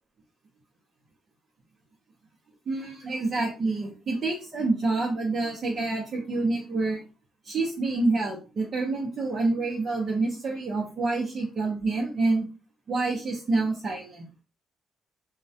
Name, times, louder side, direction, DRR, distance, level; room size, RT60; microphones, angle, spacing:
voice 1, 2.7-7.0 7.4-12.5 12.9-14.3, right 3 dB, 50° right, -3 dB, 0.6 m, -27 dB
2.2 x 2.1 x 2.7 m, 0.34 s
cardioid pair, 90°, 0 cm